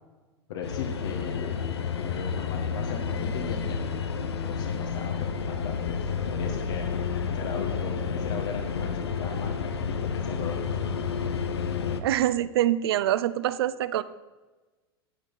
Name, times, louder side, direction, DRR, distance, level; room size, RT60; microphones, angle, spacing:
voice 1, 0.5-1.6 2.0-3.8 4.4-7.0 7.3-10.8, left 7 dB, 70° left, -1 dB, 1.8 m, -38 dB
sound 1, 0.6-12.0, left 6 dB, 85° left, 1.1 m, -30 dB
voice 2, 12.0-14.0, right 12 dB, 70° right, 16 dB, 0.7 m, -25 dB
13.0 x 8.3 x 5.5 m, 1.2 s
hypercardioid pair, 95°, 13 cm